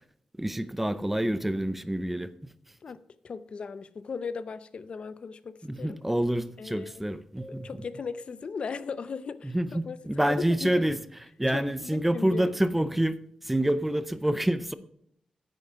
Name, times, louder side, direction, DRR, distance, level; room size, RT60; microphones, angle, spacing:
voice 1, 0.4-2.5 5.6-7.7 9.4-11.0 11.4-14.7, right 1 dB, 5° right, 0.5 m, -27 dB
voice 2, 2.8-6.0 6.6-6.9 7.5-10.8 11.5-12.5, left 5 dB, 50° left, 0.5 m, -37 dB
sound 1, 7.4-8.9, left 1 dB, 30° left, 3.6 m, -51 dB
9.1 x 9.1 x 4.9 m
wide cardioid pair, 145°, 2 cm